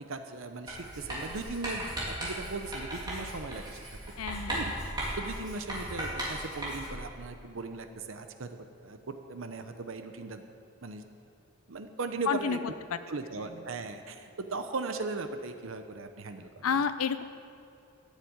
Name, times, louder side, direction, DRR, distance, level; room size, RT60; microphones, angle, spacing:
voice 1, 0.0-3.8 4.5-4.7 5.2-10.4 10.8-11.0 11.7-12.6 13.1-16.5, right 3 dB, 70° right, 8 dB, 0.7 m, -38 dB
Writing, 0.7-7.1, right 1 dB, 20° right, 3.2 m, -37 dB
voice 2, 4.2-4.6 12.3-12.6 12.9-13.0 16.6-17.2, left 6 dB, 90° left, 11 dB, 0.6 m, -29 dB
12.5 x 7.4 x 8.6 m, 2.6 s
head